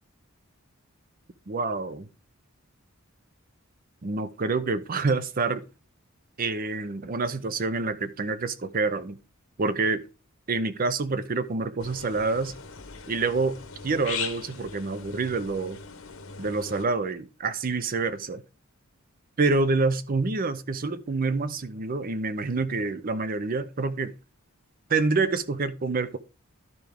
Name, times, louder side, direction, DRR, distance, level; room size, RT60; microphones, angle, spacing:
voice 1, 1.5-2.1 4.0-5.6 6.4-9.2 9.6-10.0 10.5-12.5 13.1-13.6 13.8-15.8 16.4-18.4 19.4-24.1 24.9-26.2, right 3 dB, 40° right, 0.6 m, -27 dB
sound 1, 11.8-16.9, left 6 dB, 70° left, 1.0 m, -39 dB
12.0 x 4.6 x 3.5 m
head